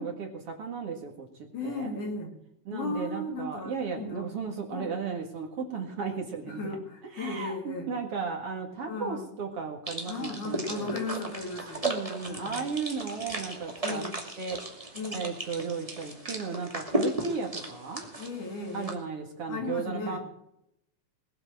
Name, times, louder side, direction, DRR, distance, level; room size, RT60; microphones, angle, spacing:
voice 1, 0.0-2.0 2.7-6.6 7.1-10.9 11.8-14.0 14.4-18.0 18.7-20.2, right 5 dB, 50° right, 2 dB, 2.5 m, -35 dB
voice 2, 1.5-2.3 2.7-4.3 4.7-4.9 6.5-7.9 8.9-9.3 10.1-11.9 12.3-12.6 13.8-14.2 15.0-15.3 18.2-19.1 19.5-20.2, left 2 dB, 65° left, 2 dB, 4.4 m, -36 dB
sound 1, 9.9-18.9, right 1 dB, 10° right, 1.9 m, -35 dB
20.5 x 7.8 x 7.5 m, 0.76 s
omnidirectional pair, 3.9 m